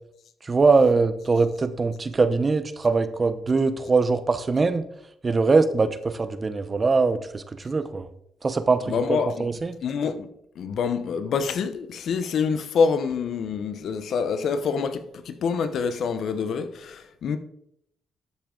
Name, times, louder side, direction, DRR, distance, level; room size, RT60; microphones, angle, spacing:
voice 1, 0.4-4.8 5.2-8.1 8.4-9.7, right 4 dB, 30° right, 0.9 m, -22 dB
voice 2, 8.9-9.5 9.8-10.3 10.6-17.4, left 5 dB, 65° left, 0.9 m, -26 dB
12.0 x 7.2 x 3.9 m
cardioid pair, 90°, 0 cm